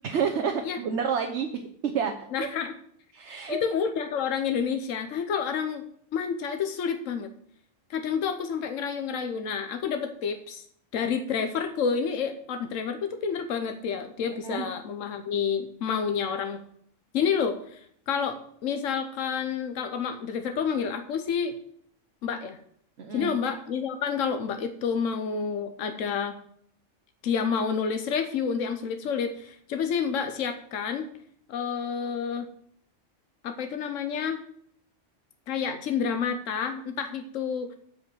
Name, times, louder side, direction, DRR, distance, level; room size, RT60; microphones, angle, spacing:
voice 1, 0.0-2.1 3.1-3.6 14.4-14.7 23.0-23.3, right 6 dB, 65° right, 5 dB, 1.2 m, -29 dB
voice 2, 2.3-2.7 3.5-5.8 6.1-7.3 7.9-10.6 10.9-16.6 17.1-21.5 22.2-22.6 23.1-26.4 27.2-31.1 31.5-32.5 33.4-34.4 35.5-37.8, left 6 dB, 90° left, 7 dB, 1.1 m, -29 dB
8.7 x 5.3 x 7.7 m, 0.66 s
omnidirectional pair, 1.3 m